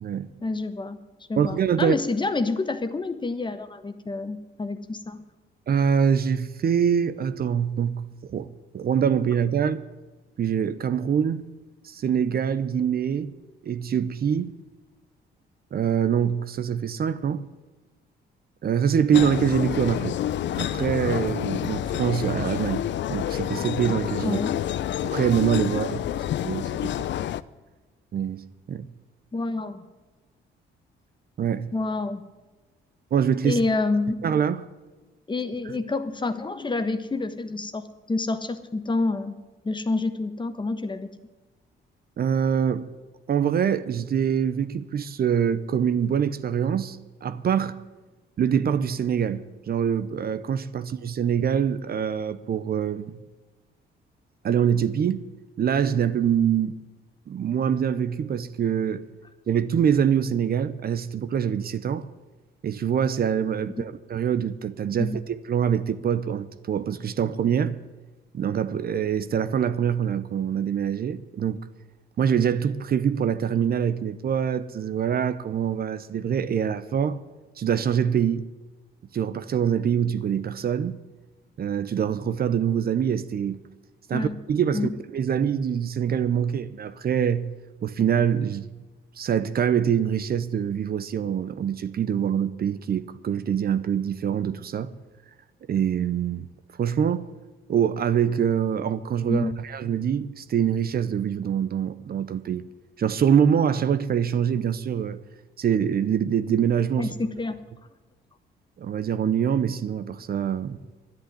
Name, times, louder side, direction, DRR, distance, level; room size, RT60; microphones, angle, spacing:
voice 1, 0.4-1.0 1.3-5.2 24.2-24.6 25.7-26.0 29.3-29.9 31.7-32.2 33.4-34.2 35.3-39.4 39.6-41.1 63.7-63.9 65.0-65.2 84.1-84.3 84.7-84.9 99.3-99.6 107.0-107.6, left 3 dB, 25° left, 1.2 m, -28 dB
voice 2, 1.4-2.0 5.7-8.5 8.7-9.8 10.4-11.4 11.8-13.3 13.6-14.5 15.7-17.4 18.6-20.2 20.6-22.8 23.1-24.4 25.0-26.0 26.4-26.9 28.1-28.4 28.7-28.9 31.4-31.7 33.1-33.6 34.2-34.6 42.2-42.9 43.3-47.8 48.4-53.2 54.4-55.2 55.6-56.8 57.3-59.0 59.5-62.1 62.6-67.8 68.3-71.6 72.2-77.2 77.6-78.5 79.1-81.0 81.6-83.6 84.1-87.5 87.8-88.7 89.2-94.9 95.7-96.5 96.8-97.3 97.7-102.6 103.0-105.2 105.6-107.1 108.8-110.8, right 8 dB, 50° right, 0.8 m, -24 dB
sound 1, 19.1-27.4, left 11 dB, 65° left, 0.5 m, -28 dB
11.0 x 10.5 x 9.9 m
cardioid pair, 90°, 20 cm